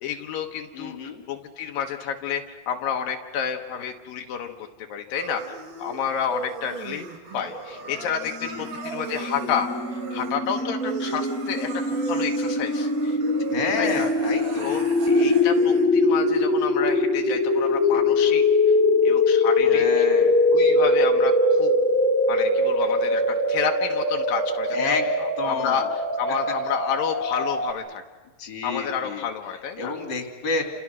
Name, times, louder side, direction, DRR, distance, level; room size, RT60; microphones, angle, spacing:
voice 1, 0.0-1.0 1.3-4.6 4.9-5.4 5.8-7.0 7.3-13.2 13.8-14.1 14.6-18.8 19.0-20.1 20.5-21.3 21.6-21.7 22.3-23.2 23.5-28.0 28.6-29.9, left 8 dB, 80° left, 3 dB, 2.9 m, -30 dB
voice 2, 0.7-1.2 8.4-8.7 13.5-14.7 19.6-20.3 24.7-25.1 25.4-25.8 28.4-29.2 29.8-30.6, left 3 dB, 30° left, 3 dB, 3.4 m, -29 dB
sound 1, 5.1-15.9, right 3 dB, 35° right, 3.1 m, -36 dB
sound 2, 8.5-27.7, left 2 dB, 5° left, 1.6 m, -22 dB
30.0 x 28.0 x 6.2 m, 1.3 s
omnidirectional pair, 4.0 m